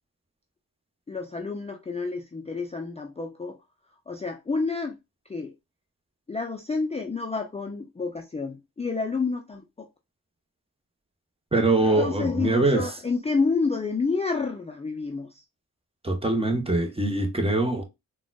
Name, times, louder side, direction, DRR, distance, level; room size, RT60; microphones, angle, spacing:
voice 1, 1.1-3.6 4.1-5.0 5.3-5.5 6.3-9.9 11.8-15.4, left 4 dB, 15° left, 0.5 m, -29 dB
voice 2, 11.5-12.9 16.0-17.8, right 2 dB, 15° right, 0.9 m, -23 dB
3.7 x 2.3 x 2.3 m
supercardioid pair, 50°, 37 cm